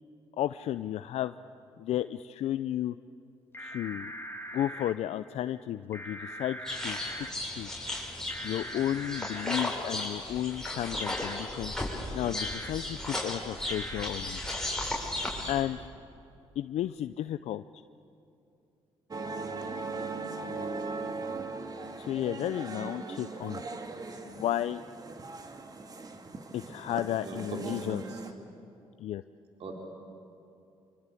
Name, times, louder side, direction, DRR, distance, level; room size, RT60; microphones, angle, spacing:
voice 1, 0.4-1.3 1.8-3.0 3.6-4.1 4.5-7.7 8.4-11.7 12.1-14.4 15.5-15.9 16.6-17.6 22.0-23.6 24.2-24.8 26.5-28.0 29.0-29.2, left 12 dB, 70° left, 12 dB, 0.5 m, -33 dB
sound 1, 3.5-4.9 5.9-7.3 8.3-9.6 11.0-11.4 12.4-12.7 13.7-14.0, equal, 20° left, 2.5 m, -41 dB
sound 2, 6.7-15.6, left 1 dB, 5° left, 6.6 m, -35 dB
sound 3, 19.1-28.3, right 3 dB, 35° right, 2.3 m, -39 dB
voice 2, 27.2-28.2 29.6-29.7, right 2 dB, 60° right, 1 dB, 3.6 m, -38 dB
25.5 x 24.5 x 8.4 m, 2.7 s
supercardioid pair, 70°, 11 cm